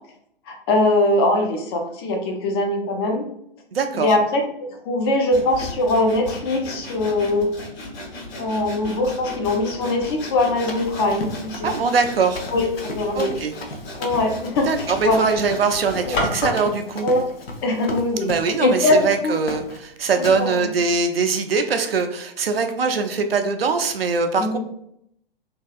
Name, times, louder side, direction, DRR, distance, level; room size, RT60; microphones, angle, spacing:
voice 1, 0.5-3.3 3.9-7.5 8.4-11.7 12.5-13.3 14.0-15.3 16.1-16.2 17.0-17.2 17.6-18.3 18.6-19.4 20.2-20.6 24.4-24.6, left 2 dB, 25° left, 3 dB, 0.4 m, -22 dB
voice 2, 3.7-4.1 11.6-12.4 13.2-13.5 14.7-17.1 18.2-24.6, right 4 dB, 80° right, 7 dB, 0.5 m, -22 dB
Sawing, 5.3-16.7, left 1 dB, 50° left, 1.2 m, -33 dB
Run, 10.6-18.6 18.9-19.2 19.5-19.8 20.2-20.4, left 2 dB, 80° left, 0.6 m, -35 dB
2.6 x 2.2 x 2.4 m, 0.72 s
figure-of-eight pair, 115°, 29 cm